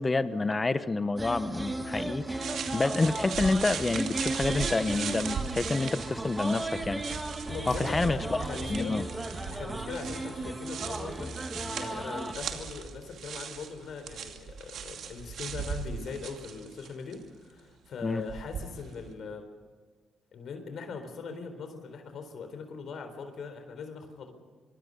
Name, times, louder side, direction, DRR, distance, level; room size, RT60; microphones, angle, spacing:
voice 1, 0.0-7.0 7.7-8.4 8.7-9.0 18.0-18.2, left 3 dB, 25° left, 13 dB, 1.1 m, -28 dB
sound 1, 1.2-12.3, right 2 dB, 15° right, 2.1 m, -36 dB
sound 2, 2.4-17.2 18.3-19.0, right 7 dB, 65° right, 2.5 m, -38 dB
voice 2, 7.5-8.9 9.5-19.5 20.3-24.3, left 5 dB, 65° left, 7 dB, 4.0 m, -41 dB
25.0 x 24.5 x 5.5 m, 1.5 s
cardioid pair, 90°, 0 cm